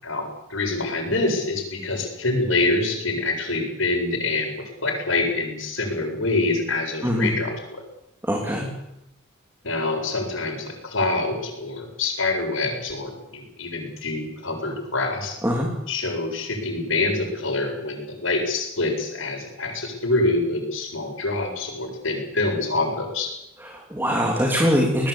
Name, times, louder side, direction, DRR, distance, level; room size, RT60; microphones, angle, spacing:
voice 1, 0.0-7.8 9.6-15.4 15.9-23.3, left 2 dB, 70° left, 2 dB, 7.5 m, -26 dB
voice 2, 7.0-7.3 8.2-8.7 15.4-15.7 23.6-25.1, equal, 10° right, 0 dB, 3.4 m, -22 dB
22.0 x 19.5 x 8.7 m, 0.85 s
head